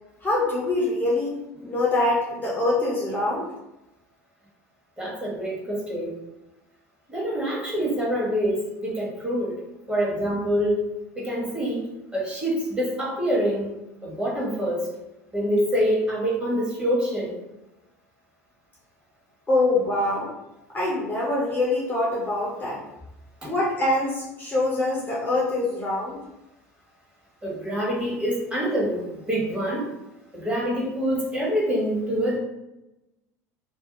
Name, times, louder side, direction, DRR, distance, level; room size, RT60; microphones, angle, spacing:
voice 1, 0.2-1.4 1.6-3.4 19.5-20.3 20.7-22.8 23.4-26.2, left 2 dB, 20° left, -5 dB, 0.8 m, -24 dB
voice 2, 5.0-6.2 7.1-9.6 9.9-10.8 11.2-11.8 12.1-13.7 14.0-14.9 15.3-17.4 23.4-23.5 27.4-29.9 30.3-32.4, equal, 10° right, -5 dB, 1.2 m, -26 dB
2.6 x 2.3 x 2.5 m, 0.93 s
figure-of-eight pair, 70°, 9 cm